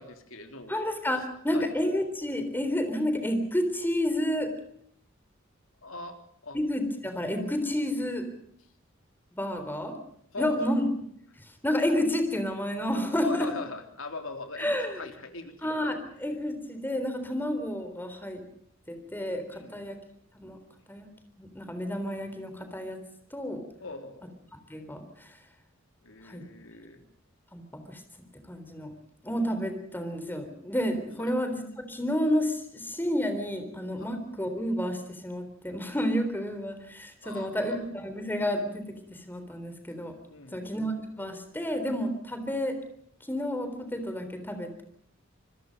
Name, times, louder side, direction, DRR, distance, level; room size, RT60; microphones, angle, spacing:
voice 1, 0.0-0.8 1.5-1.7 5.8-6.2 6.4-6.6 10.3-10.6 13.2-15.8 19.5-19.8 23.8-24.3 26.0-27.0 31.2-31.3 34.0-34.1 37.2-37.8 40.3-40.7, left 3 dB, 80° left, 6 dB, 3.3 m, -40 dB
voice 2, 0.7-4.5 6.5-8.3 9.3-10.0 10.4-10.9 11.6-13.5 14.6-15.0 15.6-18.4 18.9-20.0 20.4-20.6 20.9-21.1 21.4-23.0 23.3-23.6 24.7-25.0 26.3-26.4 27.5-27.6 27.9-28.0 28.5-28.9 29.2-39.0 39.3-40.1 40.5-42.8 43.3-44.8, equal, 10° left, 8 dB, 3.7 m, -30 dB
26.5 x 21.0 x 5.4 m, 0.67 s
head